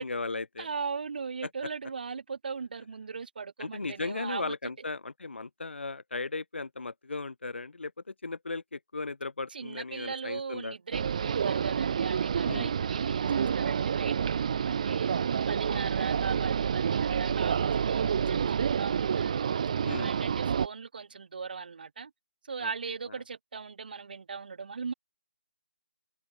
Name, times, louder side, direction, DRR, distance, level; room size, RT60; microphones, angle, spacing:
voice 1, 0.0-0.7 3.6-7.9 8.2-10.7 12.4-12.7 15.7-16.1 19.8-20.1 22.6-22.7, left 3 dB, 80° left, 1.1 m, -36 dB
voice 2, 0.6-4.5 9.5-15.1 15.5-19.5 19.9-22.1 22.4-24.9, right 5 dB, 50° right, 3.7 m, -39 dB
sound 1, 10.9-20.7, right 7 dB, 35° right, 0.5 m, -28 dB
figure-of-eight pair, 165°, 6 cm